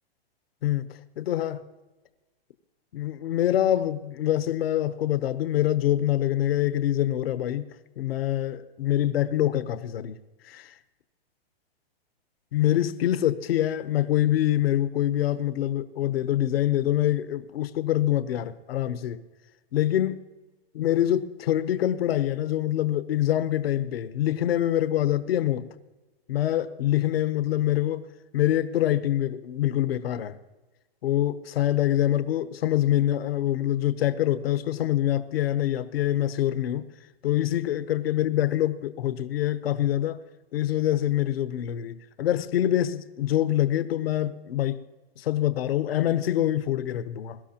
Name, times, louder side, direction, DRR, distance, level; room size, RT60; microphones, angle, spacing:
voice 1, 0.6-1.6 2.9-7.7 8.0-10.1 10.4-10.8 12.5-19.2 19.7-20.2 20.7-25.7 26.3-28.1 28.3-30.4 31.0-36.9 37.2-40.2 40.5-44.8 45.2-47.4, left 12 dB, 70° left, 1.0 m, -25 dB
22.5 x 12.5 x 2.9 m
hypercardioid pair, 145°, 30 cm